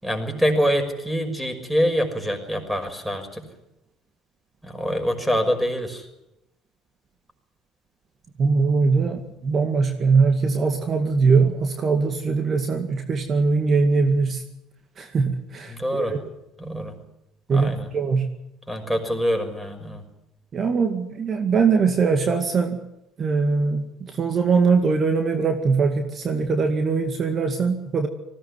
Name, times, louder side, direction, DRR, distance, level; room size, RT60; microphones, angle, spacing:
voice 1, 0.0-3.4 4.6-6.1 9.2-9.3 15.7-16.2 16.6-16.9 17.5-17.9 18.7-20.0, equal, 5° right, 6 dB, 6.1 m, -25 dB
voice 2, 8.4-14.4 15.0-16.2 17.5-18.3 20.5-22.8 23.2-28.1, right 4 dB, 40° right, 6 dB, 2.1 m, -21 dB
19.5 x 17.0 x 9.7 m, 0.88 s
hypercardioid pair, 75°, 0 cm